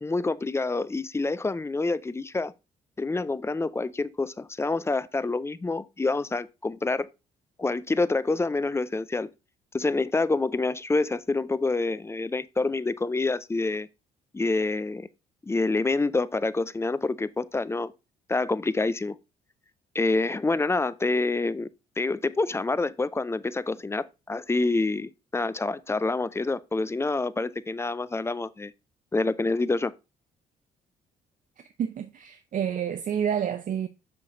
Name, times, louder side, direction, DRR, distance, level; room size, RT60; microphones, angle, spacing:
voice 1, 0.0-2.5 3.0-7.1 7.6-9.3 9.7-13.9 14.3-15.1 15.4-17.9 18.3-19.2 19.9-21.7 22.0-28.7 29.1-29.9, left 3 dB, 15° left, 0.4 m, -27 dB
voice 2, 31.8-33.9, right 8 dB, 45° right, 0.6 m, -29 dB
7.6 x 5.8 x 2.5 m
figure-of-eight pair, 45°, 19 cm